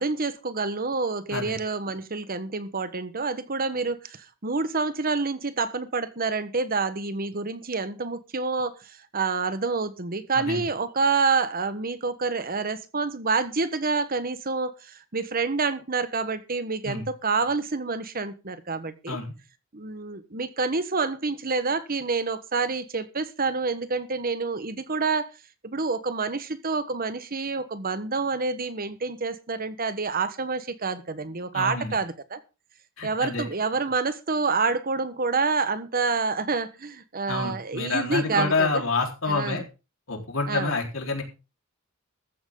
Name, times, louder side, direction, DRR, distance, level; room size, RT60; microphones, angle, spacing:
voice 1, 0.0-19.2 19.7-25.3 25.6-32.4 33.0-38.8 39.3-39.6 40.5-40.7, right 4 dB, 45° right, 1.3 m, -28 dB
voice 2, 10.3-10.6 16.8-17.1 19.1-19.3 31.5-32.0 33.0-33.4 37.3-39.6 40.1-41.2, left 3 dB, 70° left, 4.3 m, -28 dB
14.5 x 13.0 x 3.9 m
head